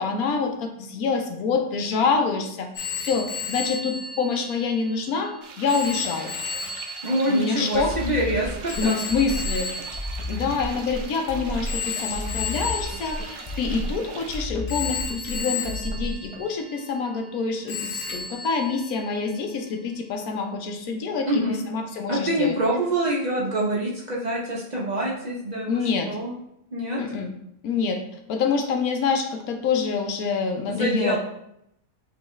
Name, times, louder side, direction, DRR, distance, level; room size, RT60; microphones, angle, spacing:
voice 1, 0.0-6.3 7.3-7.9 8.8-9.7 10.3-22.5 25.7-26.1 27.0-27.3 27.6-28.0 28.3-31.2, left 5 dB, 85° left, 4 dB, 1.2 m, -26 dB
Telephone, 2.7-11.1 11.7-14.2 14.7-17.4 17.7-19.4, left 4 dB, 60° left, 1.0 m, -34 dB
sound 1, 5.4-14.5, right 5 dB, 80° right, 1.1 m, -42 dB
voice 2, 7.0-9.0 21.3-21.6 22.1-26.3 26.7-27.0 30.7-31.2, right 1 dB, 40° right, -5 dB, 0.7 m, -25 dB
sound 2, 7.7-16.4, left 1 dB, 30° left, 0.5 m, -32 dB
5.6 x 3.1 x 3.1 m, 0.78 s
omnidirectional pair, 1.5 m